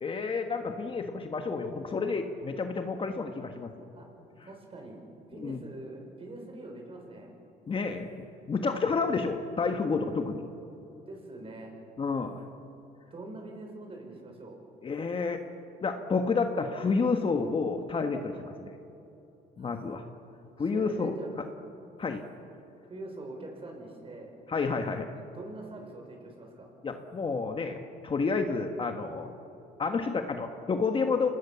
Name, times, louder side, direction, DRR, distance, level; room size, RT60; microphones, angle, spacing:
voice 1, 0.0-3.7 5.4-5.6 7.7-8.1 8.5-10.4 12.0-12.4 14.8-15.4 15.8-18.7 19.6-20.0 20.6-21.1 22.0-22.2 24.5-25.1 26.8-29.3 29.8-31.3, left 4 dB, 30° left, 5 dB, 1.5 m, -30 dB
voice 2, 4.4-7.3 11.1-11.7 13.1-14.6 18.3-18.5 19.6-19.8 20.6-21.3 22.9-24.3 25.1-26.7, right 2 dB, 35° right, 2 dB, 6.3 m, -44 dB
27.0 x 19.5 x 7.1 m, 2.9 s
cardioid pair, 110°, 17 cm